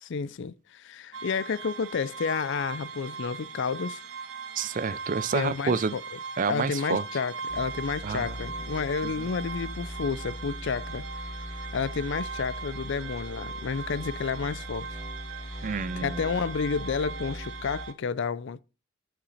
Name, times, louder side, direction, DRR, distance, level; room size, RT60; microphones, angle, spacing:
voice 1, 0.0-4.0 5.3-6.0 6.5-15.0 15.5-15.7 16.0-18.6, left 5 dB, 55° left, 0.4 m, -31 dB
sound 1, 1.1-17.9, right 5 dB, 65° right, 0.9 m, -39 dB
voice 2, 4.6-5.9 6.4-7.0 8.0-8.4 15.6-16.2, right 5 dB, 35° right, 0.4 m, -28 dB
sound 2, 7.5-17.8, equal, 15° left, 1.0 m, -40 dB
11.5 x 5.7 x 4.1 m
head